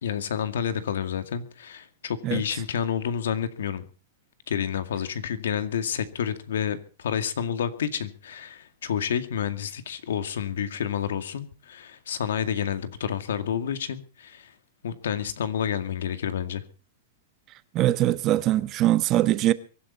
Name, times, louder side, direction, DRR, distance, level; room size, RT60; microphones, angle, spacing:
voice 1, 0.0-3.9 4.5-14.5 14.8-16.6, left 8 dB, 90° left, 2.1 m, -29 dB
voice 2, 17.7-19.5, right 14 dB, 30° right, 1.1 m, -22 dB
24.0 x 11.5 x 4.1 m
supercardioid pair, 155°, 0 cm